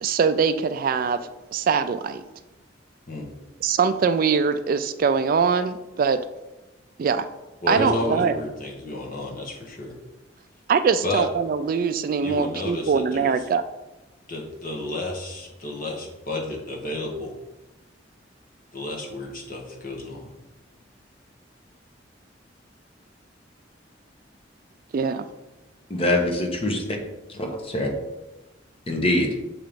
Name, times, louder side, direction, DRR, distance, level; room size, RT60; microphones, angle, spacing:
voice 1, 0.0-1.2 1.5-2.2 3.6-6.2 7.0-7.3 7.7-8.3 10.7-13.6 24.9-25.3, right 6 dB, 50° right, 11 dB, 0.3 m, -22 dB
voice 2, 7.6-9.9 11.0-11.3 12.2-13.4 14.3-17.3 18.7-20.3, left 2 dB, 50° left, -1 dB, 1.3 m, -31 dB
voice 3, 25.9-27.0 27.3-27.9 28.9-29.3, left 1 dB, 30° left, 2 dB, 1.0 m, -24 dB
6.6 x 3.0 x 5.1 m, 1.1 s
head